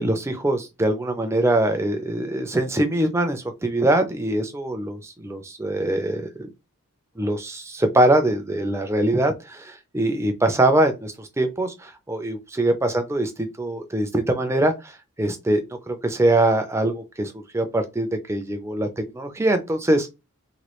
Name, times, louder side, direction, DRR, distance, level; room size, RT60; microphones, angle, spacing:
voice 1, 0.0-6.5 7.2-15.6 15.9-20.1, right 1 dB, 10° right, 0.4 m, -23 dB
3.0 x 2.3 x 3.0 m
head